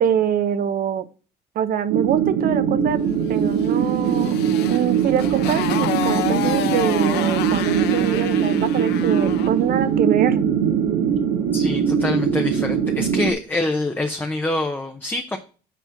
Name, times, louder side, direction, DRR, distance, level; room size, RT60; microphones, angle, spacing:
voice 1, 0.0-1.1 1.5-3.0 3.3-4.4 4.7-10.4, right 9 dB, 60° right, 12 dB, 0.8 m, -24 dB
sound 1, 1.9-13.3, right 7 dB, 90° right, 1.2 m, -21 dB
Motorcycle, 3.5-9.6, left 11 dB, 80° left, 0.8 m, -29 dB
voice 2, 11.5-15.4, left 2 dB, 10° left, 4 dB, 0.7 m, -25 dB
7.1 x 4.3 x 5.7 m, 0.37 s
cardioid pair, 110°, 17 cm